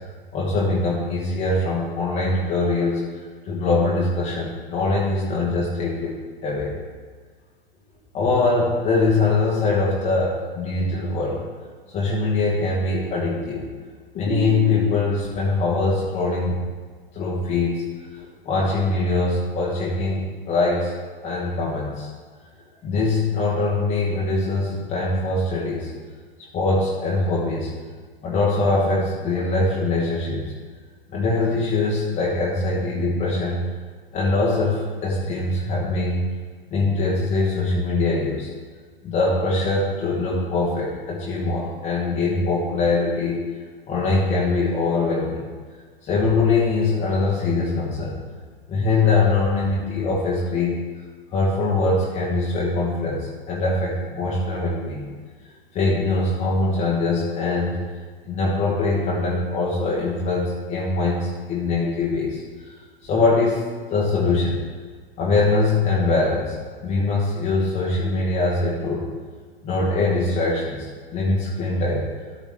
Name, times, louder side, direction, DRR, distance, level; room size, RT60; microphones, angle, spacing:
voice 1, 0.3-3.0 3.4-6.2 6.4-6.7 8.1-11.4 11.9-13.7 14.1-16.6 17.1-17.8 18.1-20.9 21.2-22.1 22.8-25.9 26.5-27.7 28.2-30.5 31.1-33.6 34.1-36.2 36.7-38.5 39.0-43.4 43.9-45.4 46.0-48.2 48.7-50.7 51.3-55.1 55.7-57.8 58.3-62.7 63.0-63.6 63.9-64.6 65.2-66.5 66.8-69.0 69.6-72.1, left 3 dB, 25° left, -5 dB, 1.4 m, -22 dB
13.0 x 4.9 x 3.6 m, 1.5 s
figure-of-eight pair, 100°, 30 cm